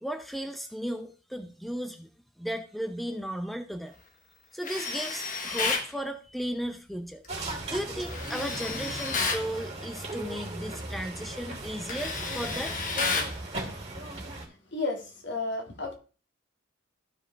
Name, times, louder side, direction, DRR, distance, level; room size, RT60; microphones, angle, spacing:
voice 1, 0.0-2.1 2.4-3.9 4.5-7.2 7.7-12.7, equal, ahead, 0.6 m, -35 dB
Tools, 4.6-5.9 8.1-9.5 11.0-11.2 11.5-13.4, left 4 dB, 45° left, 1.4 m, -31 dB
sound 1, 7.3-14.5, right 2 dB, 35° right, 2.8 m, -38 dB
voice 2, 14.7-15.9, left 3 dB, 65° left, 2.0 m, -32 dB
14.0 x 4.8 x 3.3 m
head